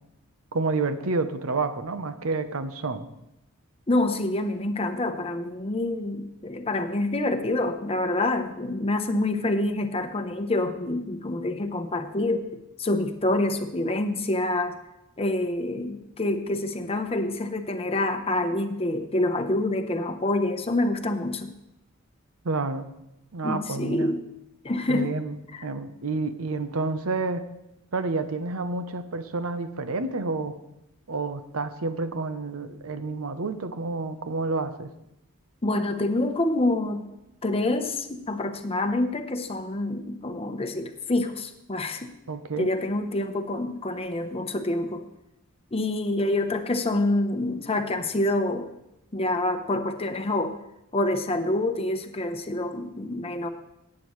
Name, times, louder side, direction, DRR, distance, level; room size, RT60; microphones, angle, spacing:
voice 1, 0.5-3.1 22.4-22.9 23.3-24.1 24.9-25.4 25.6-27.5 27.9-30.5 31.1-34.9 42.3-42.7, right 3 dB, 85° right, 10 dB, 0.8 m, -29 dB
voice 2, 3.9-12.5 12.8-14.8 15.2-21.5 23.4-24.2 24.6-25.2 25.5-25.7 35.6-37.1 37.4-42.1 42.6-45.0 45.7-48.7 49.1-50.6 50.9-53.5, left 2 dB, 30° left, 8 dB, 0.8 m, -27 dB
17.5 x 8.6 x 3.1 m, 0.87 s
head